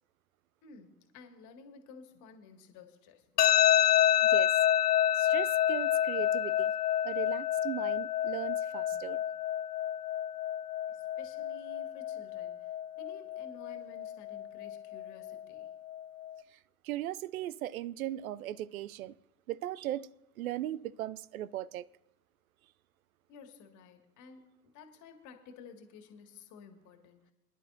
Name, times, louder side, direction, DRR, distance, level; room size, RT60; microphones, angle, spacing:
voice 1, 0.6-3.6 8.9-9.2 10.9-15.7 23.3-27.3, left 5 dB, 40° left, 2.0 m, -53 dB
sound 1, 3.4-16.4, left 11 dB, 80° left, 0.6 m, -29 dB
voice 2, 5.1-6.7 7.0-9.2 16.5-16.6 16.8-19.1 19.5-20.1 20.4-21.9, right 13 dB, 65° right, 0.5 m, -38 dB
24.0 x 11.0 x 2.6 m
figure-of-eight pair, 80°, 47 cm